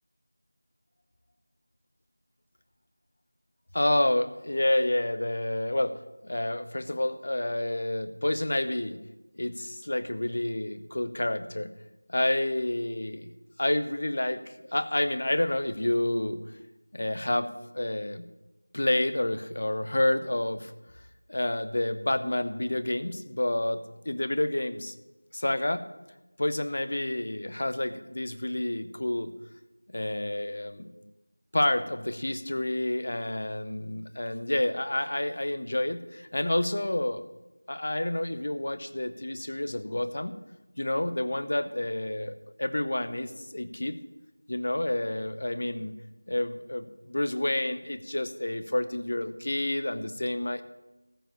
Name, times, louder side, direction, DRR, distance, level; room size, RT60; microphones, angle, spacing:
voice 1, 3.7-6.0 6.2-9.0 9.3-11.7 12.1-13.3 13.6-16.4 16.9-18.2 18.7-20.7 21.3-24.9 25.3-25.8 26.4-29.3 29.9-30.9 31.5-37.2 37.7-40.3 40.8-44.0 44.5-46.0 46.3-50.6, left 1 dB, 50° left, 12 dB, 0.8 m, -29 dB
14.0 x 5.0 x 8.5 m, 1.0 s
figure-of-eight pair, 175°, 0 cm